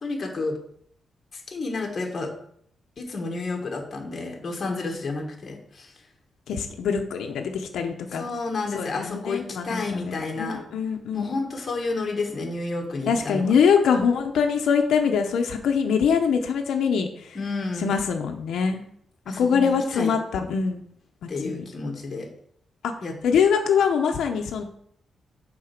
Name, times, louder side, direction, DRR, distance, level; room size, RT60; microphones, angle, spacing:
voice 1, 0.0-0.6 1.3-2.3 3.0-5.9 8.1-10.6 11.1-13.5 17.3-17.9 19.3-20.1 21.3-22.3 23.0-23.1, left 3 dB, 30° left, 1 dB, 1.5 m, -30 dB
voice 2, 6.5-8.3 8.7-11.3 13.1-17.4 17.8-18.8 19.4-20.8 21.2-21.6 22.8-22.9 23.2-24.6, left 6 dB, 80° left, 4 dB, 0.8 m, -23 dB
8.8 x 4.0 x 5.9 m, 0.66 s
wide cardioid pair, 175°, 0 cm